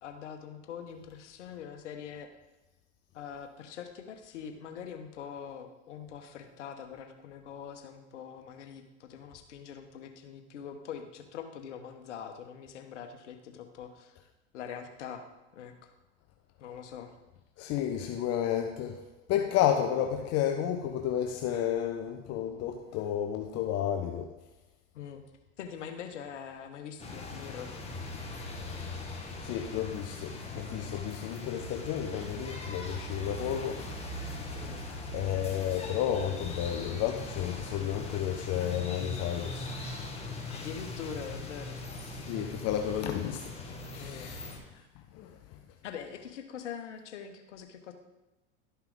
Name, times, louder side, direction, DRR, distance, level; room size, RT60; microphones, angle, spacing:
voice 1, 0.0-2.3 3.1-14.2 14.5-15.3 15.5-15.9 16.6-17.1 19.8-20.0 24.9-25.2 25.6-27.8 34.6-34.8 40.5-41.8 43.9-44.3 45.8-47.9, left 8 dB, 85° left, 1.2 m, -43 dB
voice 2, 17.6-19.0 19.3-24.3 29.4-33.8 35.1-39.7 42.3-43.4 43.9-44.5 45.1-45.6, left 10 dB, 45° left, 0.8 m, -31 dB
sound 1, 27.0-44.6, left 2 dB, 20° left, 1.7 m, -40 dB
12.5 x 5.8 x 3.9 m
hypercardioid pair, 105°, 35 cm